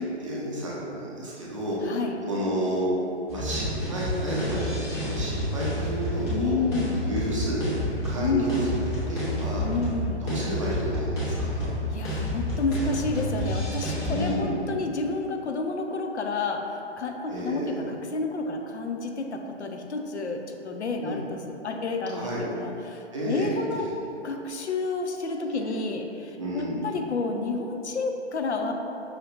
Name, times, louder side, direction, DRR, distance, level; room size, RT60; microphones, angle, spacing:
voice 1, 0.2-2.9 3.3-6.5 7.0-7.8 8.0-8.7 9.1-9.6 10.2-11.7 14.1-14.7 17.3-17.8 21.0-21.2 22.1-22.5 23.1-23.5 23.7-24.0 26.4-26.8, equal, 30° right, -6 dB, 0.5 m, -31 dB
voice 2, 1.8-2.2 6.3-7.0 8.1-8.5 9.6-10.2 11.9-21.4 21.6-23.9 24.2-28.7, left 3 dB, 70° left, 3 dB, 0.5 m, -30 dB
sound 1, 3.3-14.3, left 1 dB, 25° left, 0.9 m, -30 dB
5.7 x 2.8 x 2.4 m, 2.8 s
figure-of-eight pair, 130°, 35 cm